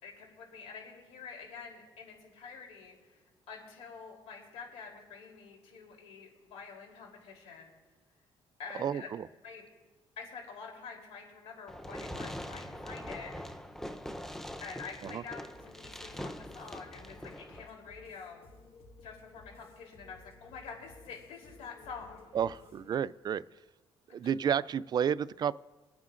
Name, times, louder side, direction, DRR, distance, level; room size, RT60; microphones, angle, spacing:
voice 1, 0.0-7.8 8.6-9.1 9.4-9.6 10.2-13.3 14.6-18.5 19.0-22.2, left 5 dB, 90° left, 0 dB, 3.4 m, -47 dB
voice 2, 8.8-9.3 15.0-15.2 22.3-23.4 24.1-25.5, right 8 dB, 45° right, 19 dB, 0.3 m, -31 dB
Fireworks, 11.7-17.7, equal, 5° left, 0.7 m, -43 dB
sound 1, 15.5-23.0, left 3 dB, 65° left, 1.7 m, -56 dB
28.0 x 9.5 x 2.5 m, 1.2 s
cardioid pair, 115°, 10 cm